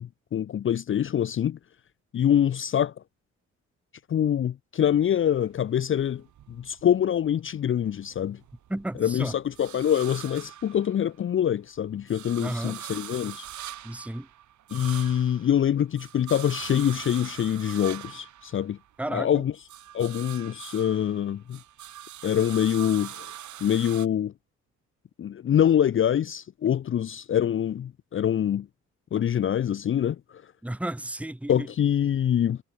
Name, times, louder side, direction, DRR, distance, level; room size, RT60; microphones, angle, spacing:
voice 1, 0.0-1.6 2.1-2.9 4.1-8.4 9.0-13.5 14.7-18.8 19.1-19.5 19.9-21.6 22.2-23.3 23.6-24.3 25.2-28.7 29.1-30.4 31.5-32.6, left 9 dB, 40° left, 0.6 m, -25 dB
sound 1, 5.0-7.3 7.7-11.4 11.8-19.2 19.5-24.1, right 12 dB, 70° right, 3.1 m, -43 dB
voice 2, 8.7-9.3 12.4-12.8 13.8-14.3 19.0-19.4 30.6-31.7, right 1 dB, 5° right, 1.3 m, -33 dB
cardioid pair, 90°, 30 cm